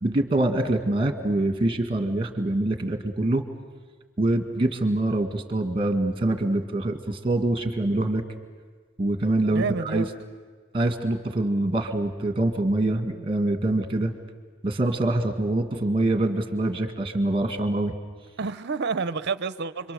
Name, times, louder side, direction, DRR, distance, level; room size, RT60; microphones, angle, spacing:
voice 1, 0.0-3.4 4.2-8.2 9.0-10.1 10.7-14.1 14.6-17.9, right 2 dB, 25° right, 6 dB, 1.8 m, -25 dB
voice 2, 9.5-10.1 18.4-19.9, right 4 dB, 50° right, 14 dB, 0.7 m, -29 dB
30.0 x 24.0 x 6.9 m, 1.5 s
head